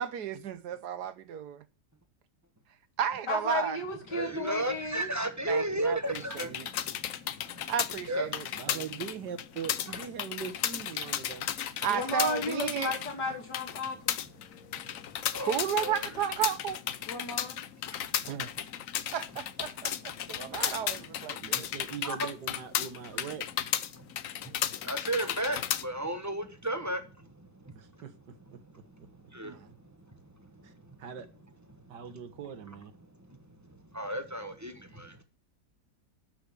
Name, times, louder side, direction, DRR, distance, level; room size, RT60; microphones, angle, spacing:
voice 1, 0.0-1.6 3.0-3.8 5.5-6.7 7.7-8.8 11.8-12.9 15.5-16.8 18.3-18.5 19.1-21.7 29.4-29.7, right 9 dB, 70° right, 1.4 m, -33 dB
voice 2, 3.3-5.1 11.9-14.2 17.1-17.6, left 3 dB, 85° left, 3.4 m, -34 dB
voice 3, 4.1-7.7 8.1-8.3 8.6-8.8 14.6-16.1 17.9-18.0 20.4-20.6 21.4-21.7 22.0-22.3 23.9-24.5 24.8-28.0 28.6-31.0 31.7-31.8 33.0-35.2, right 1 dB, 10° right, 1.2 m, -36 dB
sound 1, 6.1-25.8, left 10 dB, 60° left, 1.0 m, -35 dB
voice 4, 8.5-11.5 20.8-20.9 21.4-23.5 27.8-28.1 28.5-28.6 30.6-30.7 31.0-31.3 31.9-32.9, right 7 dB, 90° right, 1.9 m, -41 dB
12.5 x 6.1 x 6.9 m
omnidirectional pair, 1.8 m